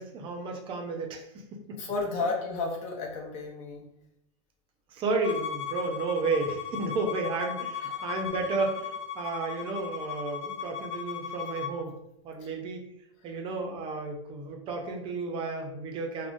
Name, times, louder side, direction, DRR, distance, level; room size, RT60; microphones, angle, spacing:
voice 1, 0.0-1.8 4.9-12.0 12.2-12.8 13.2-16.3, right 3 dB, 30° right, 2 dB, 0.5 m, -32 dB
voice 2, 1.8-3.9 7.2-7.4 7.8-8.0 12.4-12.5 13.3-13.4, left 3 dB, 40° left, 0 dB, 0.8 m, -33 dB
Bowed string instrument, 5.2-11.8, left 7 dB, 70° left, 0.4 m, -37 dB
3.5 x 2.1 x 2.6 m, 0.80 s
supercardioid pair, 135°, 17 cm